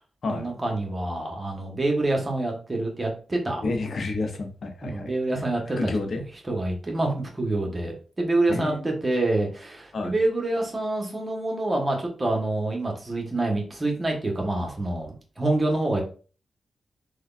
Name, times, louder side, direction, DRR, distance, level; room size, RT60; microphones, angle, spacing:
voice 1, 0.3-3.6 4.8-5.9 6.5-16.0, right 2 dB, 30° right, 1 dB, 1.0 m, -26 dB
voice 2, 3.6-5.1 5.8-6.2 8.5-9.0 9.9-10.1, left 3 dB, 65° left, 4 dB, 0.6 m, -30 dB
3.3 x 2.2 x 2.4 m, 0.38 s
cardioid pair, 50°, 0 cm